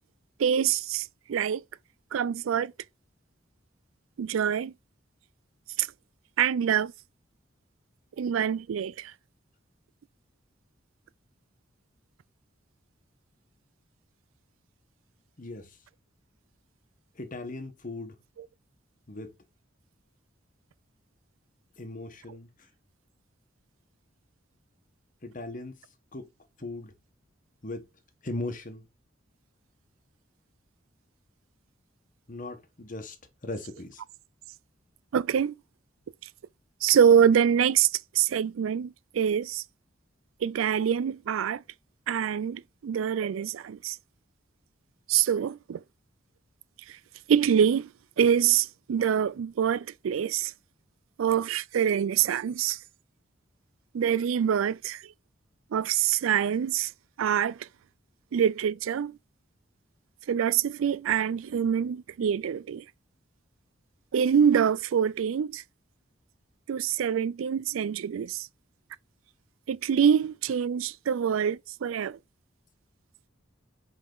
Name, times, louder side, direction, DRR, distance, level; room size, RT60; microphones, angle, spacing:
voice 1, 0.4-1.6 2.1-2.7 4.2-4.7 5.8-5.9 6.4-6.9 8.2-9.1 35.1-35.5 36.8-37.9 38.2-39.6 40.4-41.6 42.1-44.0 45.1-45.8 47.3-47.9 48.2-50.5 51.2-52.8 53.9-55.0 55.7-56.9 57.2-57.6 58.3-59.1 60.3-62.8 64.1-65.6 66.7-68.5 69.7-72.2, right 8 dB, 85° right, 0.4 m, -25 dB
voice 2, 15.4-15.8 17.1-18.2 19.1-19.3 21.8-22.7 25.2-25.8 26.1-26.3 26.6-26.9 27.6-27.8 28.2-28.8 32.3-33.2 33.4-34.0, left 2 dB, 40° left, 1.2 m, -38 dB
5.5 x 5.0 x 3.9 m
head